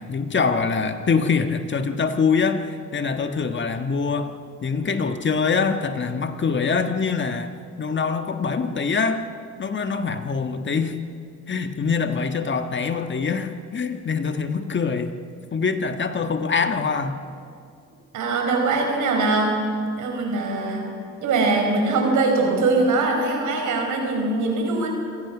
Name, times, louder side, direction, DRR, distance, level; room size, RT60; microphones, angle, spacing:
voice 1, 0.0-4.3 4.6-7.5 7.8-9.2 9.6-11.0 11.5-15.2 15.5-17.2, left 5 dB, 40° left, 7 dB, 1.5 m, -24 dB
voice 2, 18.1-19.6 20.0-20.8 21.2-24.9, right 3 dB, 80° right, 2 dB, 4.9 m, -22 dB
26.0 x 18.5 x 6.1 m, 2.4 s
cardioid pair, 90°, 30 cm